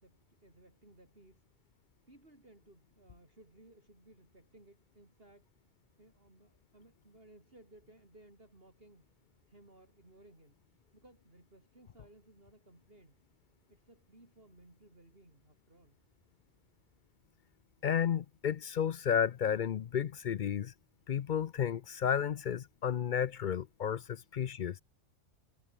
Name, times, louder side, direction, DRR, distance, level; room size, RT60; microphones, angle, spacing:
voice 1, 0.0-1.4 2.1-5.5 6.0-9.1 9.5-13.2 13.7-16.0, right 1 dB, 45° right, 6.6 m, -60 dB
voice 2, 17.8-20.7 21.1-24.8, left 8 dB, 55° left, 0.5 m, -32 dB
omnidirectional pair, 1.3 m